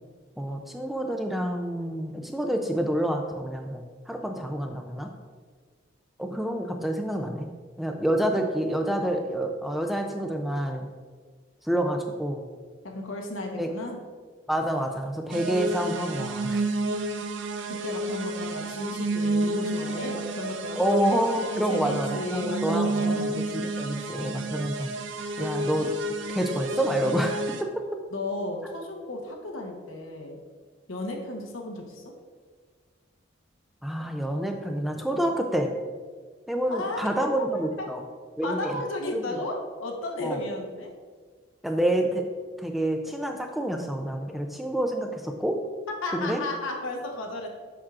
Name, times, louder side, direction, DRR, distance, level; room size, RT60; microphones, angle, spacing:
voice 1, 0.4-5.1 6.2-7.5 7.8-10.9 11.6-12.4 13.6-13.7 14.5-16.6 20.8-24.9 25.4-25.9 26.3-27.7 33.8-35.7 36.5-38.0 38.4-38.8 39.1-39.2 40.2-40.4 41.6-42.2 42.6-45.6 46.1-46.4, right 1 dB, ahead, 3 dB, 0.4 m, -28 dB
voice 2, 12.8-14.0 17.7-21.0 21.3-23.3 28.1-30.4 30.9-32.0 36.6-37.9 38.4-40.9 46.0-47.5, left 2 dB, 90° left, 1 dB, 1.0 m, -34 dB
sound 1, 15.3-27.6, right 2 dB, 70° right, 0.4 m, -30 dB
7.2 x 5.9 x 2.4 m, 1.5 s
head